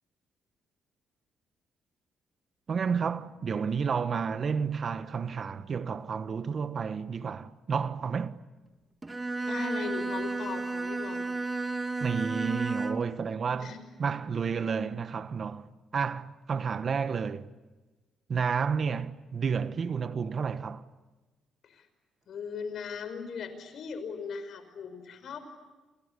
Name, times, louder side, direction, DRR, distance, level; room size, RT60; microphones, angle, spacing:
voice 1, 2.7-8.4 12.0-13.7 14.0-17.5 18.3-20.8, right 6 dB, 45° right, 1.2 m, -31 dB
Bowed string instrument, 9.0-13.2, right 3 dB, 20° right, 1.9 m, -32 dB
voice 2, 9.5-11.3 13.6-13.8 21.6-21.9 22.3-25.4, left 6 dB, 65° left, 5.5 m, -38 dB
29.5 x 28.5 x 6.9 m
cardioid pair, 90°, 0 cm